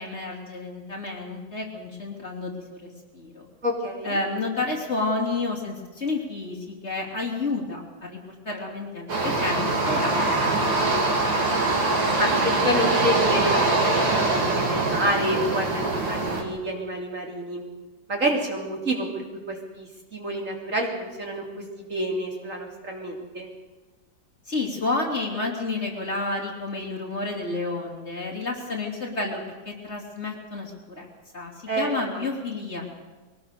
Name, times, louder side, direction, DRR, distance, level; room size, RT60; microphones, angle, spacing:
voice 1, 0.0-2.8 3.1-3.5 4.0-11.0 24.5-31.1 31.3-32.9, left 3 dB, 35° left, 0 dB, 3.4 m, -30 dB
voice 2, 3.6-4.2 12.2-17.6 18.1-23.5 31.7-32.1, right 1 dB, 40° right, 0 dB, 3.5 m, -28 dB
sound 1, 9.1-16.4, right 2 dB, 85° right, 3.4 m, -23 dB
22.0 x 19.0 x 6.7 m, 1.3 s
omnidirectional pair, 2.0 m